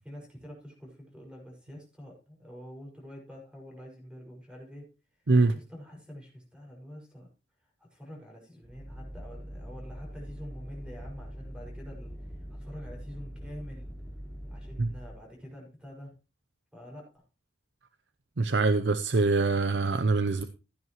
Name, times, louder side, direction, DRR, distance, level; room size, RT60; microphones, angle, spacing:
voice 1, 0.0-4.9 5.5-7.3 7.8-13.9 14.5-16.2 16.7-17.2, equal, 5° right, -1 dB, 5.8 m, -47 dB
sound 1, 8.6-15.2, equal, 10° left, 5.2 m, -43 dB
voice 2, 18.4-20.4, right 3 dB, 90° right, 10 dB, 0.7 m, -24 dB
15.5 x 9.4 x 3.1 m, 0.30 s
head